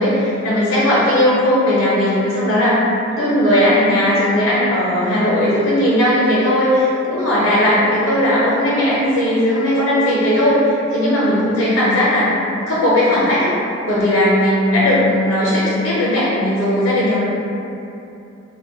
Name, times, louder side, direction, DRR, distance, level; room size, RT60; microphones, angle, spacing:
voice 1, 0.0-2.8 3.2-12.3 12.7-13.5 13.9-17.2, left 1 dB, 70° left, -9 dB, 0.6 m, -17 dB
2.1 x 2.1 x 3.7 m, 2.8 s
head